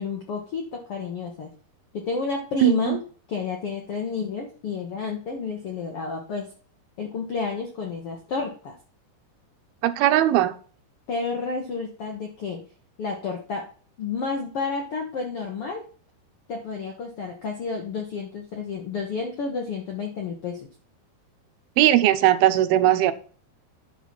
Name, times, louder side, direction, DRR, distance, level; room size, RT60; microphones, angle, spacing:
voice 1, 0.0-1.5 1.9-3.0 3.3-6.5 7.0-8.7 11.1-12.6 13.0-13.6 14.0-15.8 16.5-20.7, left 4 dB, 80° left, 1.3 m, -30 dB
voice 2, 2.6-3.0 9.8-10.6 21.8-23.1, right 13 dB, 80° right, 2.5 m, -19 dB
10.0 x 4.2 x 6.0 m
omnidirectional pair, 4.6 m